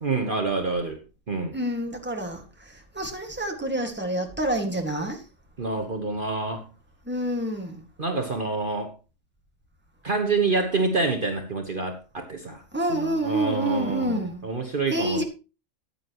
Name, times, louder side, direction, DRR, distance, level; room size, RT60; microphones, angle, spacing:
voice 1, 0.0-1.0 1.3-1.6 5.6-6.6 8.0-8.9 10.0-12.6 12.9-15.2, right 3 dB, 40° right, 1.3 m, -27 dB
voice 2, 1.5-2.4 3.0-5.2 7.1-7.8 12.7-14.4 14.9-15.2, right 1 dB, 10° right, 1.9 m, -27 dB
14.5 x 9.7 x 3.0 m
omnidirectional pair, 1.4 m